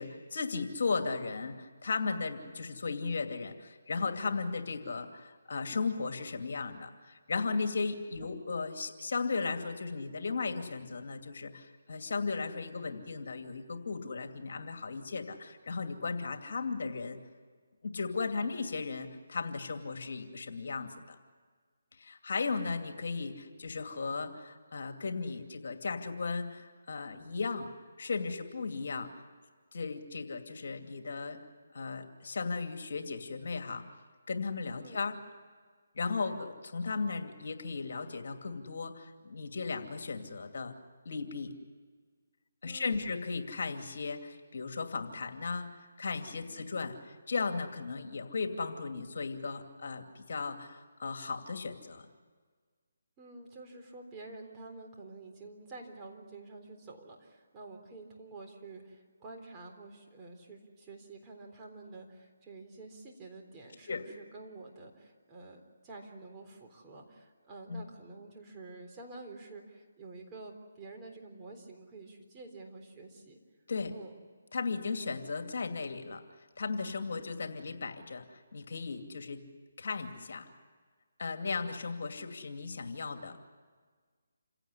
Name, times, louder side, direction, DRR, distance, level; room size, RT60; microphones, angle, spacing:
voice 1, 0.0-17.2 17.8-21.2 22.0-27.7 28.0-29.1 29.7-31.4 31.7-33.8 34.3-35.2 35.9-40.7 41.0-41.5 42.6-52.1 63.9-64.0 67.7-67.8 73.7-73.9 74.5-76.2 76.6-79.4 79.8-80.5 81.2-83.4, left 4 dB, 60° left, 6 dB, 2.6 m, -36 dB
voice 2, 42.7-43.1 46.4-46.7 53.2-73.4 73.9-74.1 77.1-77.3, right 3 dB, 20° right, 0 dB, 3.8 m, -49 dB
28.0 x 17.0 x 9.8 m, 1.5 s
figure-of-eight pair, 155°, 0 cm